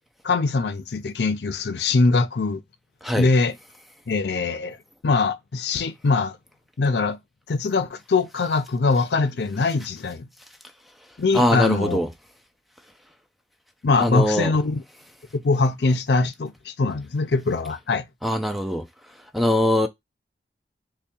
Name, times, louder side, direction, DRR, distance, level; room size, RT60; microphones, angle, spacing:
voice 1, 0.2-2.6 3.2-3.5 4.1-4.8 5.0-6.4 6.8-7.2 7.5-10.3 11.2-12.0 13.8-14.8 15.3-18.0, left 3 dB, 75° left, 0.5 m, -22 dB
voice 2, 11.3-12.1 14.0-14.5 18.2-18.9 19.3-19.9, left 1 dB, ahead, 0.3 m, -22 dB
3.4 x 2.2 x 4.1 m
head